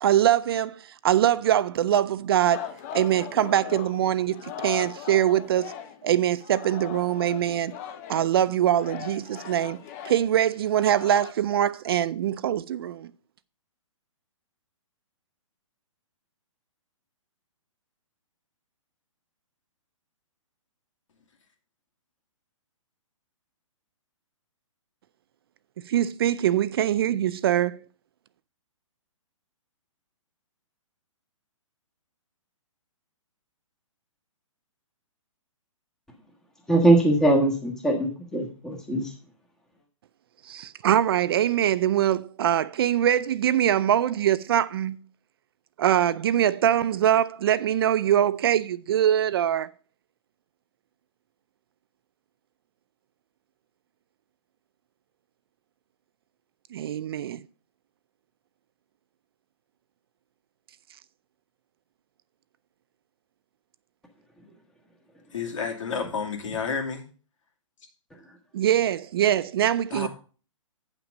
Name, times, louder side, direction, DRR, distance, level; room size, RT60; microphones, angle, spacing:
voice 1, 0.0-2.7 2.9-5.7 6.0-7.7 8.1-13.1 25.9-27.8 40.5-45.0 45.8-49.7 56.7-57.4 68.5-70.1, right 11 dB, 45° right, 0.4 m, -23 dB
Singing, 2.5-6.1 6.4-11.3, left 9 dB, 30° left, 0.9 m, -39 dB
voice 2, 36.7-39.1, right 2 dB, 5° left, 1.4 m, -21 dB
voice 3, 65.3-67.0 69.9-70.1, left 5 dB, 70° left, 2.5 m, -30 dB
8.9 x 5.9 x 5.1 m
hypercardioid pair, 150°, 17 cm